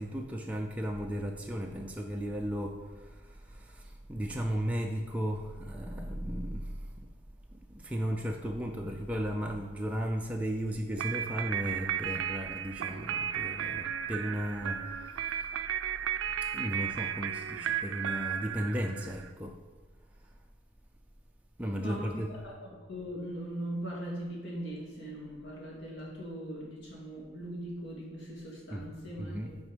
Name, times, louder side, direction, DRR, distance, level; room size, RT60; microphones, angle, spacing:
voice 1, 0.0-2.8 4.1-6.6 7.7-14.8 16.5-19.5 21.6-22.3 28.7-28.9 29.2-29.5, equal, 5° right, 1 dB, 0.4 m, -35 dB
sound 1, 11.0-19.3, right 9 dB, 80° right, 0.3 m, -34 dB
voice 2, 21.8-29.6, equal, 65° left, -4 dB, 2.0 m, -40 dB
6.1 x 4.5 x 5.0 m, 1.4 s
head